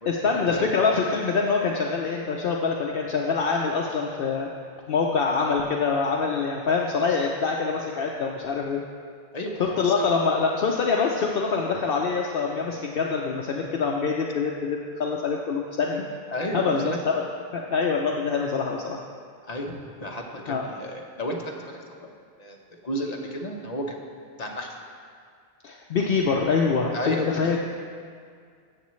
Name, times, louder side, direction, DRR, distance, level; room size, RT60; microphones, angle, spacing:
voice 1, 0.1-4.5 4.9-8.8 9.6-16.0 16.5-17.2 17.5-19.0 20.5-20.7 25.6-27.6, left 5 dB, 60° left, 0 dB, 0.8 m, -25 dB
voice 2, 9.3-10.1 16.3-17.0 19.4-19.7 20.0-22.1 22.4-22.6 22.8-24.1 24.4-24.8 26.9-27.6, equal, 40° left, 1 dB, 1.0 m, -32 dB
14.0 x 7.4 x 3.1 m, 2.1 s
omnidirectional pair, 1.1 m